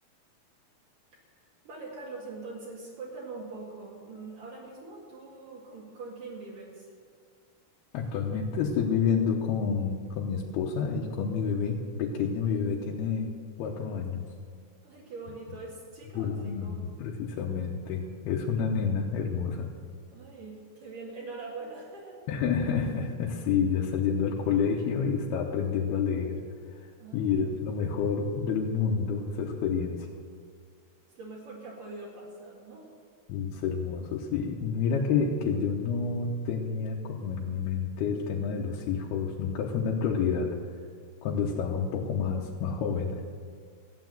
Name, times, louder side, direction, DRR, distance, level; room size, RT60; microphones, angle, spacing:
voice 1, 1.1-6.9 14.8-16.9 20.1-22.2 27.0-27.9 31.2-32.9, right 3 dB, 60° right, -5 dB, 3.6 m, -43 dB
voice 2, 7.9-13.3 13.6-14.2 16.2-19.7 22.3-26.4 27.1-30.1 33.3-40.6 41.2-43.2, left 6 dB, 80° left, -2 dB, 3.0 m, -29 dB
15.0 x 9.4 x 7.7 m, 2.1 s
omnidirectional pair, 4.5 m